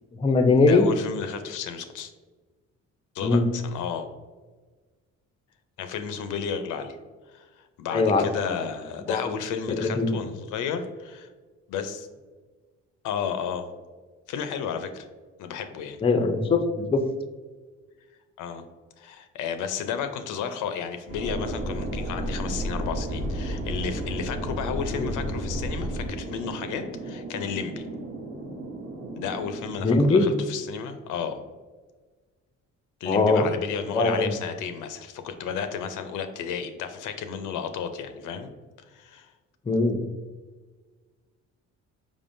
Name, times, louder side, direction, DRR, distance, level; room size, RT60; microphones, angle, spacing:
voice 1, 0.1-0.9 3.2-3.4 7.9-8.5 9.1-9.3 9.7-10.2 16.0-16.6 16.9-17.0 24.9-25.1 29.8-30.3 33.1-33.5 33.9-34.3 39.7-40.0, left 3 dB, 20° left, 6 dB, 0.4 m, -21 dB
voice 2, 0.7-2.1 3.1-4.1 5.8-7.0 7.3-11.3 11.7-12.1 13.0-13.7 14.3-15.1 15.4-16.0 18.4-18.6 19.0-27.8 29.2-31.4 33.0-38.5 38.9-39.3, left 7 dB, 80° left, 8 dB, 0.5 m, -32 dB
Thunder, 21.1-30.5, right 2 dB, 30° right, 0.8 m, -37 dB
sound 1, 21.1-26.1, equal, 70° right, 1.0 m, -32 dB
4.9 x 3.5 x 2.6 m, 1.4 s
cardioid pair, 90°, 30 cm